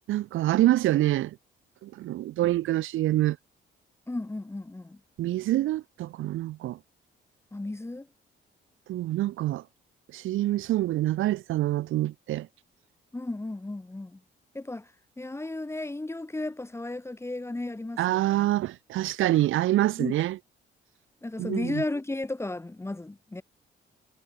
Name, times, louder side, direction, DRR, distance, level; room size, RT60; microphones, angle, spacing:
voice 1, 0.1-1.3 1.8-3.4 5.2-6.8 8.9-9.6 10.1-12.5 18.0-20.4 21.4-21.8, right 15 dB, 85° right, 2.4 m, -26 dB
voice 2, 4.1-5.0 7.5-8.1 13.1-14.2 14.5-14.9 15.2-18.5 20.0-20.3 21.2-23.4, left 2 dB, 15° left, 1.9 m, -34 dB
cardioid pair, 90°, 20 cm